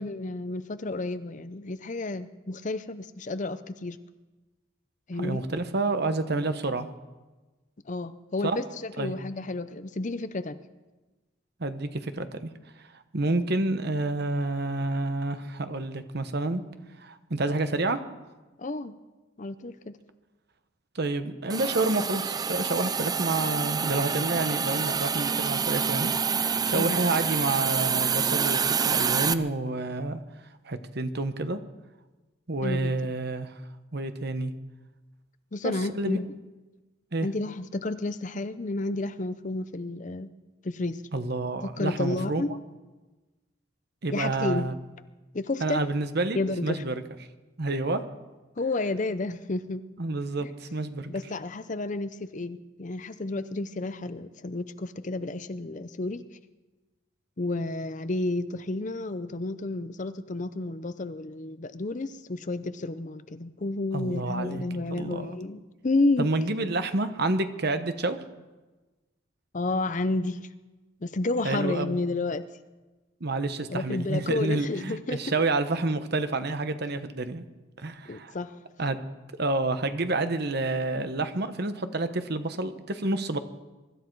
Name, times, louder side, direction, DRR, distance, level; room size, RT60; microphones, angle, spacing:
voice 1, 0.0-4.0 5.1-5.4 7.9-10.6 18.6-19.0 19.4-19.9 25.6-25.7 26.7-27.0 32.6-33.1 35.5-36.3 37.2-40.3 40.6-41.0 41.6-42.6 44.1-44.7 45.3-45.8 46.3-46.8 48.6-49.8 50.4-50.5 51.1-56.2 57.4-66.3 69.5-70.5 71.0-72.5 73.7-75.4 78.1-78.6, left 2 dB, 35° left, 12 dB, 0.6 m, -31 dB
voice 2, 5.2-6.9 8.4-8.6 9.0-9.2 11.6-12.5 13.1-16.6 17.0-18.0 20.9-26.1 26.6-30.2 30.6-31.6 32.5-33.5 33.9-34.5 35.6-36.2 37.1-37.3 41.1-42.4 44.0-44.8 45.6-46.9 47.6-48.0 50.0-51.1 63.9-64.6 65.0-65.4 66.2-68.2 71.4-72.0 73.2-77.4 77.8-78.3 78.8-79.0 79.4-83.4, right 2 dB, 50° right, 9 dB, 1.0 m, -29 dB
Hiss, 21.5-29.3, right 6 dB, 20° right, 0.4 m, -27 dB
23.5 x 13.0 x 4.6 m, 1.2 s
head